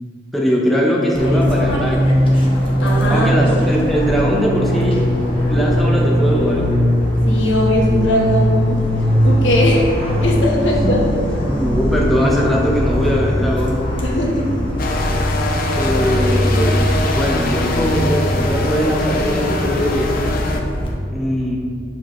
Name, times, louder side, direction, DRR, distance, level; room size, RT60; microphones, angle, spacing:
voice 1, 0.3-2.0 3.1-5.0 5.5-6.7 10.8-11.0 11.3-13.8 15.8-16.8 17.1-20.3 21.1-21.6, equal, ahead, -3 dB, 0.6 m, -20 dB
Fixed-wing aircraft airplane, 1.1-20.9, equal, 30° left, 1.0 m, -19 dB
voice 2, 2.8-3.3 7.3-8.9 9.2-9.9 10.2-11.0 14.0-14.7 15.8-15.9, left 1 dB, 75° left, -2 dB, 1.1 m, -19 dB
sound 1, 14.8-20.6, left 2 dB, 50° left, 0.6 m, -24 dB
6.6 x 4.8 x 3.0 m, 2.3 s
head